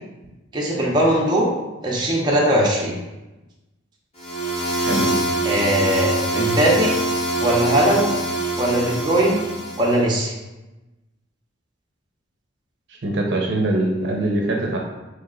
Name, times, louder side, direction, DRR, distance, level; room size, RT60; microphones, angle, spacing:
voice 1, 0.5-1.5 1.8-2.9 5.4-6.9 7.4-8.1 8.6-9.4 9.8-10.3, right 1 dB, 20° right, -4 dB, 0.6 m, -19 dB
sound 1, 4.2-10.0, right 1 dB, 35° left, 0.7 m, -24 dB
voice 2, 4.8-5.2 13.0-14.8, right 1 dB, 65° right, 0 dB, 0.6 m, -22 dB
3.2 x 2.9 x 3.7 m, 1.1 s
head